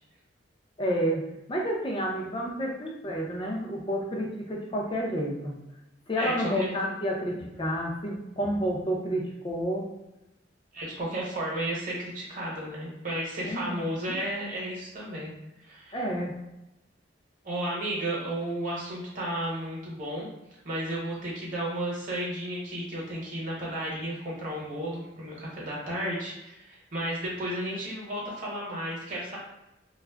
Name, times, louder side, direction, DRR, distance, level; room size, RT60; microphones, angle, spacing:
voice 1, 0.8-5.6 6.1-9.9 13.4-14.2 15.9-16.4, equal, 25° left, -1 dB, 0.5 m, -30 dB
voice 2, 6.2-6.9 10.7-15.3 15.6-16.0 17.4-20.3 20.6-29.4, right 1 dB, 45° right, -4 dB, 1.0 m, -33 dB
2.3 x 2.0 x 3.3 m, 0.94 s
head